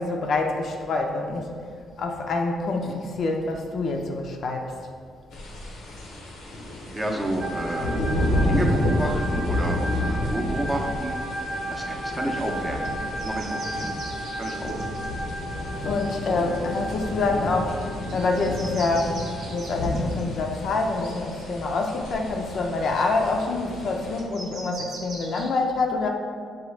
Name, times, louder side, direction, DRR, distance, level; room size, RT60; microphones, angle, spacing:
voice 1, 0.0-1.5 2.0-4.8 15.8-17.8 18.1-19.2 19.5-26.1, left 3 dB, 60° left, 2 dB, 0.4 m, -26 dB
sound 1, 5.3-24.2, left 1 dB, 90° left, 0.7 m, -30 dB
voice 2, 6.9-8.0 8.4-11.1 11.7-13.9 14.2-14.7, right 1 dB, 15° right, 1 dB, 0.6 m, -30 dB
sound 2, 7.4-19.5, right 1 dB, 60° right, 0.5 m, -34 dB
sound 3, 12.8-12.9 13.2-17.4 18.0-22.6 23.1-23.2 24.2-25.5, right 2 dB, 85° right, 0.8 m, -43 dB
5.9 x 2.3 x 3.2 m, 2.1 s
cardioid pair, 90°, 0 cm